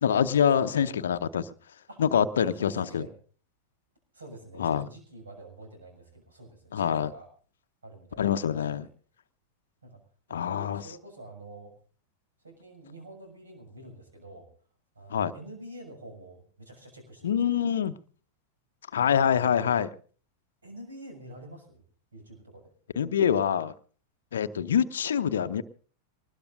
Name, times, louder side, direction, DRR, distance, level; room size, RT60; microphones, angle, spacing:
voice 1, 0.0-1.4 2.0-3.1 4.6-4.8 6.7-7.1 8.2-8.9 10.3-10.8 15.1-15.3 17.2-17.9 18.9-19.9 23.0-23.7 24.3-25.6, left 8 dB, 65° left, 10 dB, 0.8 m, -25 dB
voice 2, 0.5-1.0 1.9-2.0 2.3-3.1 4.1-7.3 7.8-8.9 9.8-10.0 10.3-11.7 12.4-14.5 14.9-17.6 19.4-19.8 20.6-21.8 22.1-22.7, right 1 dB, 70° right, 3 dB, 6.4 m, -47 dB
23.0 x 20.0 x 2.6 m, 0.42 s
figure-of-eight pair, 90°, 0 cm